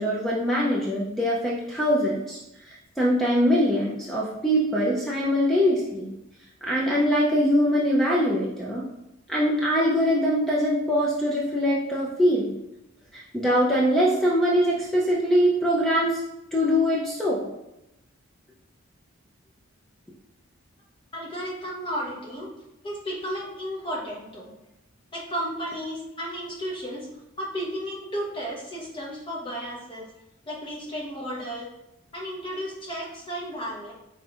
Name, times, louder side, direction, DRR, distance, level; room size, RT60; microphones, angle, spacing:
voice 1, 0.0-2.4 2.7-6.1 6.6-8.8 9.3-12.5 13.1-16.2 16.5-17.4, equal, ahead, -5 dB, 0.4 m, -23 dB
voice 2, 21.1-22.5 22.8-24.5 25.1-27.1 27.4-30.0 30.5-31.7 32.1-33.9, equal, 25° left, -4 dB, 0.9 m, -33 dB
5.1 x 3.6 x 2.4 m, 0.90 s
head